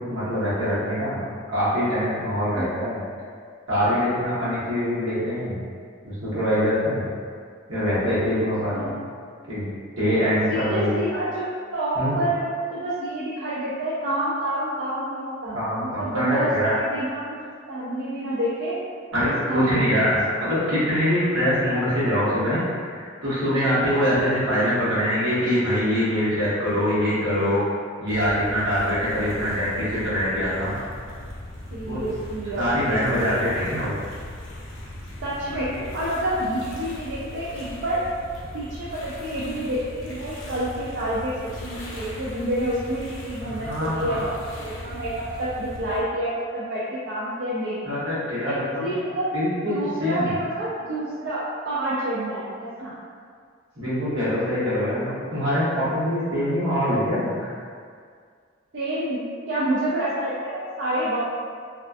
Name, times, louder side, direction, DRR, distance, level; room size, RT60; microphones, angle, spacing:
voice 1, 0.1-1.2 1.5-3.0 3.7-5.6 6.0-7.1 7.7-8.9 9.5-9.7 10.0-11.0 11.9-12.2 15.5-16.7 19.1-22.7 22.9-27.6 28.0-30.8 31.8-32.0 32.6-34.0 35.7-35.8 43.4-44.2 47.8-48.9 49.3-50.3 53.8-57.5, equal, 80° right, -11 dB, 1.0 m, -24 dB
voice 2, 10.5-11.5 11.7-17.4 17.7-18.8 19.3-20.2 31.7-33.4 35.2-38.0 38.5-47.8 48.4-49.3 49.7-52.9 58.7-61.2, right 1 dB, 60° right, -9 dB, 0.4 m, -28 dB
sound 1, 28.1-46.0, left 1 dB, 70° left, 0.5 m, -39 dB
2.3 x 2.2 x 2.4 m, 2.1 s
head